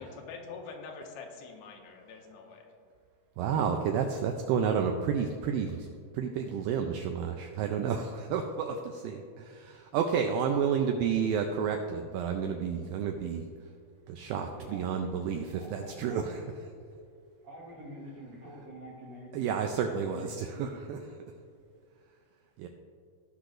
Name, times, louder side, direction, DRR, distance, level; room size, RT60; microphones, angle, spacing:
voice 1, 0.0-2.7, left 4 dB, 80° left, 2 dB, 2.7 m, -45 dB
voice 2, 3.4-5.9 6.1-13.4 14.1-16.4 19.3-21.0 22.6-22.7, right 7 dB, 85° right, 4 dB, 2.0 m, -30 dB
voice 3, 14.5-14.9 15.6-16.5 17.4-19.6 19.9-20.8 21.3-21.4, equal, 70° right, -5 dB, 1.7 m, -47 dB
17.0 x 5.9 x 2.5 m, 2.3 s
omnidirectional pair, 4.6 m